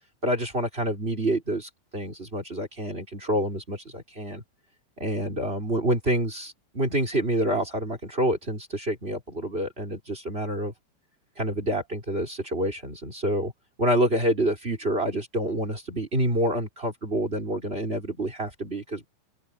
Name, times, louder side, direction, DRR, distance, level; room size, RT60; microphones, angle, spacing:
voice 1, 0.2-4.4 5.0-10.7 11.4-13.5 13.8-19.0, right 1 dB, 15° right, 3.1 m, -27 dB
omnidirectional pair, 4.5 m